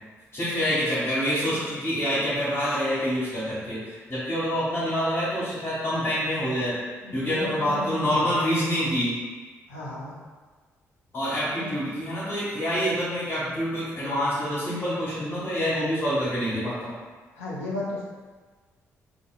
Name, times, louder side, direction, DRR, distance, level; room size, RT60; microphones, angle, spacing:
voice 1, 0.3-6.7 7.1-9.1 11.1-17.0, equal, 35° left, -12 dB, 1.4 m, -26 dB
voice 2, 7.0-8.3 9.7-10.1 11.6-11.8 17.4-18.0, left 2 dB, 80° left, -5 dB, 0.4 m, -34 dB
2.8 x 2.6 x 2.3 m, 1.4 s
figure-of-eight pair, 40°, 8 cm